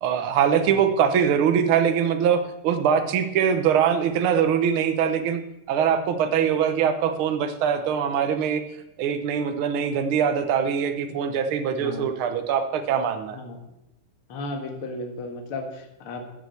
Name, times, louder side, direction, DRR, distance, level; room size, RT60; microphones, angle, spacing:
voice 1, 0.0-5.4 5.7-8.6 9.0-13.4, right 8 dB, 65° right, 8 dB, 1.3 m, -22 dB
voice 2, 11.8-12.1 13.3-13.7 14.3-16.2, left 2 dB, 50° left, 3 dB, 2.3 m, -35 dB
12.5 x 7.5 x 7.0 m, 0.89 s
omnidirectional pair, 3.5 m